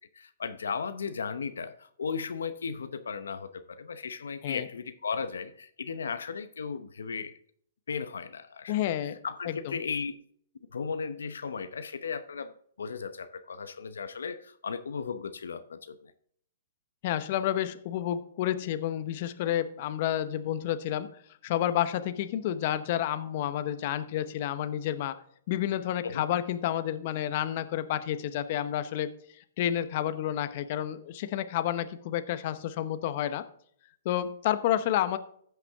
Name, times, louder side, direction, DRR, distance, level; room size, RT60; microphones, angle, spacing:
voice 1, 0.1-7.4 7.9-8.9 9.2-10.2 10.7-16.1 26.0-26.2, left 5 dB, 85° left, 11 dB, 0.8 m, -36 dB
voice 2, 8.7-9.2 9.4-9.8 17.0-21.1 21.4-25.2 25.5-29.1 29.6-33.5 34.0-35.2, left 11 dB, 50° left, 12 dB, 0.9 m, -30 dB
14.5 x 5.9 x 3.5 m, 0.63 s
hypercardioid pair, 135°, 0 cm